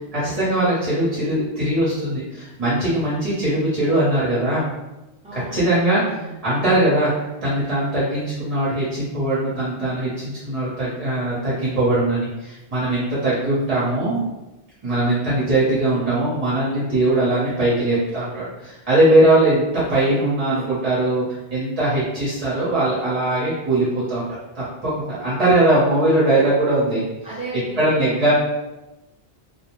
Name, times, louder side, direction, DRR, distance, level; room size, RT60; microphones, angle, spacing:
voice 1, 0.1-4.6 5.3-7.1 7.4-14.2 14.8-21.2 21.5-24.2 24.5-27.0 27.8-28.3, right 1 dB, 40° right, -9 dB, 0.8 m, -20 dB
voice 2, 5.2-6.4 25.1-25.5 27.2-28.3, right 2 dB, 5° right, -8 dB, 0.6 m, -36 dB
2.5 x 2.0 x 3.0 m, 1.0 s
omnidirectional pair, 1.1 m